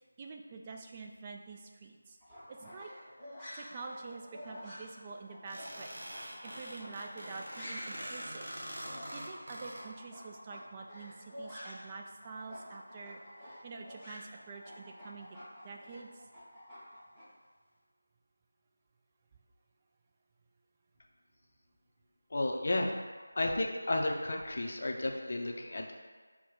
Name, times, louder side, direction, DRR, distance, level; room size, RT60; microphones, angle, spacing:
voice 1, 0.2-2.2 2.5-2.9 3.5-8.5 9.1-13.2 13.6-15.3 15.6-16.1, right 4 dB, 20° right, 1 dB, 0.3 m, -47 dB
sound 1, 2.2-12.0 12.2-17.2, equal, 5° right, 0.9 m, -49 dB
sound 2, 5.5-9.8, equal, 55° right, 1.0 m, -44 dB
voice 2, 22.3-22.9 23.4-25.9, left 2 dB, 50° left, 1 dB, 0.6 m, -32 dB
5.7 x 2.2 x 3.8 m, 1.5 s
figure-of-eight pair, 165°, 0 cm